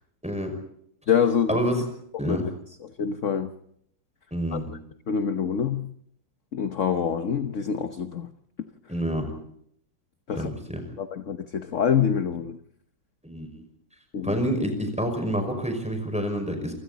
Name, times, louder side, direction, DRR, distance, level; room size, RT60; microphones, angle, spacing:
voice 1, 0.2-0.5 1.5-1.8 2.2-2.4 4.3-4.7 8.9-9.3 10.4-10.8 13.2-13.6 14.2-16.8, equal, 5° right, 5 dB, 5.6 m, -28 dB
voice 2, 1.1-1.7 2.2-2.5 2.8-3.5 4.5-4.6 5.1-5.9 6.5-8.3 10.3-10.5 11.0-12.6 14.1-14.4, left 7 dB, 50° left, 9 dB, 1.3 m, -26 dB
28.0 x 25.0 x 4.1 m, 0.69 s
omnidirectional pair, 1.9 m